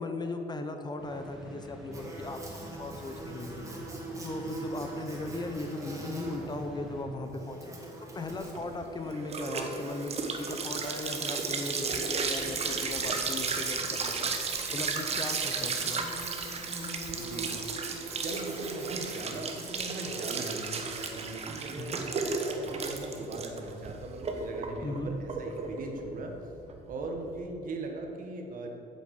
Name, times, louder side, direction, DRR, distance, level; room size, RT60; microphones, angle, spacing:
voice 1, 0.0-2.4 2.8-3.7 4.2-7.9 8.1-14.3 14.7-16.1 21.8-22.0 24.8-25.1, left 2 dB, 25° left, 5 dB, 0.8 m, -38 dB
sound 1, 1.0-7.7, equal, ahead, 2.0 m, -47 dB
Buzz, 1.9-21.7, right 2 dB, 20° right, 1.9 m, -44 dB
sound 2, 8.3-27.4, right 4 dB, 40° right, 1.1 m, -34 dB
voice 2, 17.2-17.5 18.2-26.4 26.9-28.7, right 2 dB, 55° right, 3 dB, 1.5 m, -40 dB
8.4 x 7.0 x 6.6 m, 2.9 s
cardioid pair, 110°, 17 cm